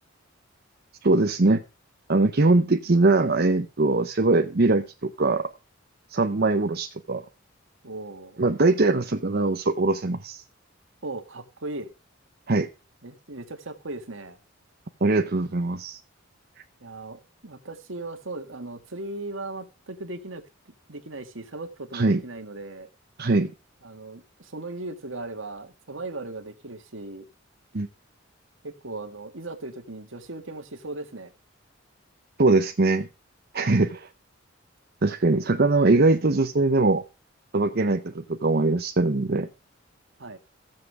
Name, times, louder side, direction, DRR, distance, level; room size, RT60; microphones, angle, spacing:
voice 1, 1.0-1.6 2.1-5.5 6.1-7.2 8.4-10.4 12.5-12.7 15.0-16.0 21.9-22.2 23.2-23.5 27.7-27.9 32.4-33.1 33.5-34.1 35.0-37.0 37.5-39.5, right 3 dB, 50° right, 0.8 m, -22 dB
voice 2, 7.8-8.4 11.0-11.9 13.0-14.4 16.8-20.4 20.9-22.9 23.8-27.3 28.6-31.3 40.2-40.4, right 2 dB, 70° right, 1.9 m, -37 dB
15.0 x 7.6 x 4.8 m
head